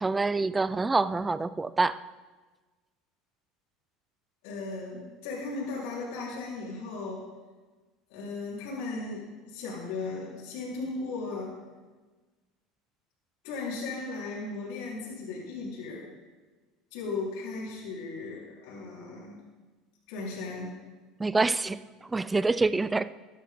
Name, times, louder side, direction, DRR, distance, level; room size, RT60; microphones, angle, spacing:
voice 1, 0.0-2.0 21.2-23.1, right 3 dB, 15° right, 16 dB, 0.4 m, -26 dB
voice 2, 4.4-7.3 8.1-11.6 13.4-16.0 16.9-19.4 20.1-20.8, left 3 dB, 75° left, -6 dB, 3.8 m, -36 dB
13.5 x 10.5 x 3.7 m, 1.3 s
supercardioid pair, 100°, 0 cm